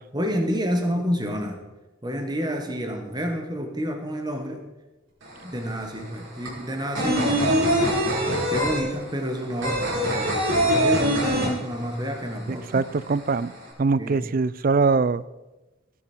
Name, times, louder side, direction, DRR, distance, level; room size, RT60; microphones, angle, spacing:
voice 1, 0.1-1.6 2.0-4.6 5.4-8.1 8.5-12.9 14.0-14.3, equal, 20° right, 4 dB, 1.6 m, -29 dB
sound 1, 5.2-5.3 5.6-12.2 12.4-12.5 12.8-13.6, equal, 65° right, 4.0 m, -23 dB
voice 2, 12.5-13.5 13.8-15.2, right 4 dB, 40° right, 18 dB, 0.4 m, -22 dB
16.5 x 9.9 x 4.5 m, 1.1 s
head